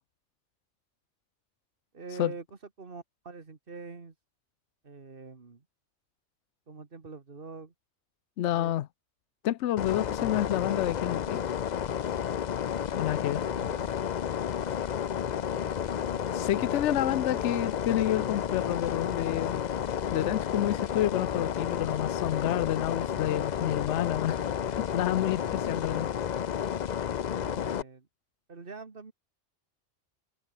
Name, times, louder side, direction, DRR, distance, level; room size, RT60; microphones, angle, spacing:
voice 1, 1.9-4.1 4.8-5.6 6.7-7.7 8.5-8.8 13.4-14.0 15.4-16.4 17.1-17.2 25.9-26.1 27.4-28.1 28.5-29.1, right 4 dB, 50° right, 1.9 m, -45 dB
voice 2, 8.4-8.9 9.4-11.4 13.0-13.5 16.3-19.6 20.1-26.1, left 12 dB, 75° left, 0.9 m, -29 dB
sound 1, 9.8-27.8, left 9 dB, 50° left, 0.6 m, -31 dB
omnidirectional pair, 1.2 m